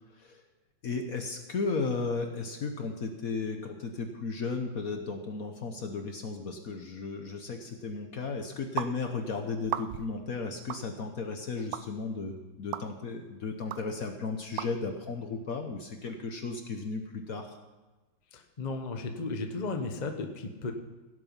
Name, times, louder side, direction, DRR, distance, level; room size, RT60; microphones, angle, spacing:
voice 1, 0.8-17.6, left 4 dB, 55° left, 5 dB, 1.3 m, -35 dB
sound 1, 8.8-8.9 9.6-10.1 10.7-10.8 11.7-11.8 12.7-12.9 13.7-13.8 14.6-14.7, right 12 dB, 75° right, 0.8 m, -34 dB
voice 2, 18.3-20.7, left 3 dB, 30° left, 5 dB, 1.0 m, -35 dB
17.0 x 8.2 x 5.6 m, 1.2 s
omnidirectional pair, 2.1 m